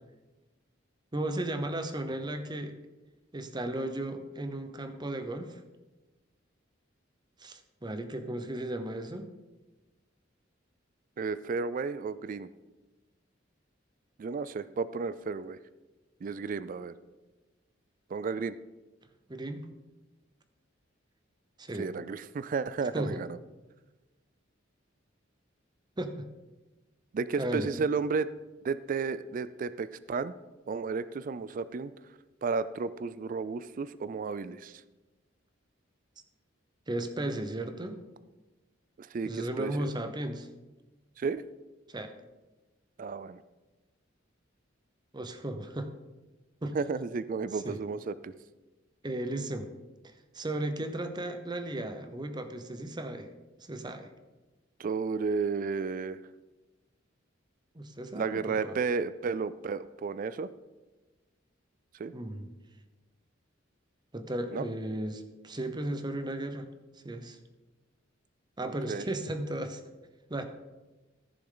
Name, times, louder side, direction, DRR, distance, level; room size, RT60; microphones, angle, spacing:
voice 1, 1.1-2.8 3.3-5.6 7.4-9.3 19.3-19.7 21.6-21.9 22.9-23.2 26.0-26.3 27.4-27.7 36.9-38.0 39.2-40.5 41.9-42.1 45.1-45.9 46.6-46.8 47.5-47.8 49.0-49.7 50.0-53.3 53.7-54.1 57.7-58.8 62.1-62.5 64.1-66.7 67.0-67.4 68.6-69.8 70.3-70.4, right 1 dB, 20° right, 8 dB, 0.8 m, -35 dB
voice 2, 11.2-12.5 14.2-15.6 16.2-16.9 18.1-18.6 21.7-23.4 27.1-28.3 28.6-30.3 30.7-31.9 32.4-34.8 39.0-39.9 41.2-41.4 43.0-43.4 46.7-48.3 54.8-56.2 58.1-60.5 62.0-62.1 64.5-64.7 68.6-69.1, right 5 dB, 45° right, 16 dB, 0.3 m, -33 dB
14.5 x 7.0 x 3.9 m, 1.2 s
head